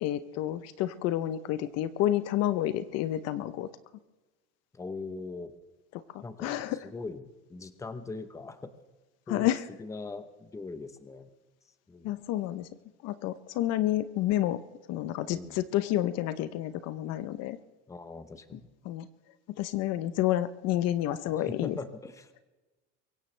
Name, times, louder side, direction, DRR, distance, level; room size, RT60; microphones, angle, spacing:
voice 1, 0.0-3.7 5.9-6.9 9.3-9.7 12.0-12.7 13.0-14.6 14.9-17.6 18.5-18.6 18.8-19.1 19.6-21.8, left 13 dB, 55° left, 13 dB, 0.8 m, -30 dB
voice 2, 4.7-5.5 6.2-6.5 6.8-8.7 9.3-9.5 9.8-11.3 11.9-12.1 15.3-15.6 17.9-18.7 21.3-22.3, left 3 dB, 10° left, 10 dB, 0.9 m, -41 dB
23.5 x 16.5 x 3.3 m, 1.2 s
cardioid pair, 140°, 31 cm